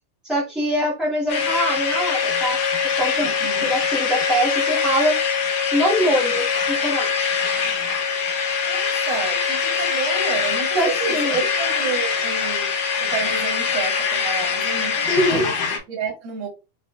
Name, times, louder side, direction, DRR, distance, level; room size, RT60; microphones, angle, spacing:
voice 1, 0.2-2.6 3.0-3.3 3.6-5.4 5.7-7.4 10.7-11.4 15.1-15.4, equal, ahead, 0.4 m, -23 dB
sound 1, 1.3-15.8, left 6 dB, 75° left, 2.0 m, -23 dB
voice 2, 3.2-3.7 8.7-12.7 13.0-15.6 15.9-16.5, right 5 dB, 70° right, 1.6 m, -30 dB
5.9 x 2.4 x 2.2 m
omnidirectional pair, 4.4 m